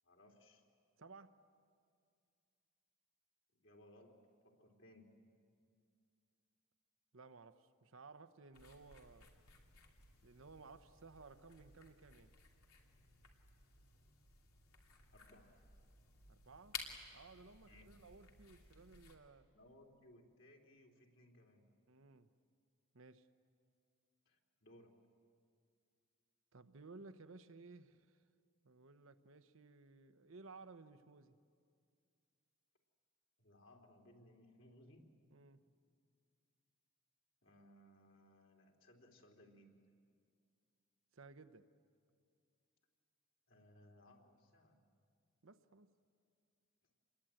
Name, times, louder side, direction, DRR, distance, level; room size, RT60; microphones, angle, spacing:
voice 1, 0.0-0.6 3.5-5.1 15.1-15.5 17.7-18.0 19.5-21.7 24.2-24.9 33.4-35.1 37.4-39.8 43.5-44.8, left 1 dB, 60° left, 3.3 m, -64 dB
voice 2, 1.0-1.4 7.1-9.3 10.2-12.4 16.3-16.8 17.1-19.5 21.9-22.3 22.9-23.3 26.5-28.2 28.6-31.4 35.3-35.6 41.1-41.7 45.4-45.9, right 3 dB, 70° right, 0.9 m, -58 dB
sound 1, 8.5-19.2, left 6 dB, 85° left, 3.1 m, -56 dB
27.5 x 22.0 x 8.9 m
head